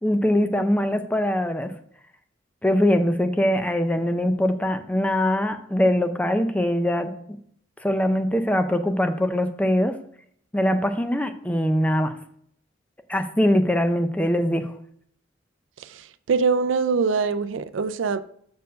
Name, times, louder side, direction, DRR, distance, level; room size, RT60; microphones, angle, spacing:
voice 1, 0.0-1.7 2.6-7.1 7.8-10.0 10.5-12.1 13.1-14.7, left 1 dB, 5° left, 0.5 m, -22 dB
voice 2, 15.8-18.2, right 5 dB, 75° right, 0.4 m, -23 dB
6.7 x 4.5 x 5.1 m
head